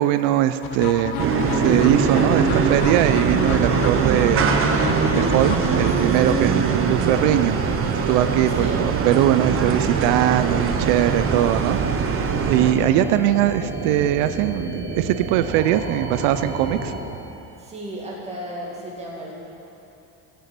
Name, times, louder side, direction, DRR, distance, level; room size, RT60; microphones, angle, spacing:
voice 1, 0.0-4.5 5.1-7.6 8.1-16.9, right 12 dB, 90° right, 11 dB, 0.6 m, -21 dB
sound 1, 0.6-6.6, left 7 dB, 55° left, 0.9 m, -30 dB
sound 2, 1.2-12.7, right 5 dB, 30° right, 0.7 m, -22 dB
sound 3, 2.0-17.0, right 2 dB, 65° right, 2.3 m, -32 dB
voice 2, 8.5-8.8 17.6-19.3, right 1 dB, 15° right, -4 dB, 2.1 m, -34 dB
16.0 x 6.9 x 6.0 m, 2.9 s
cardioid pair, 165°, 43 cm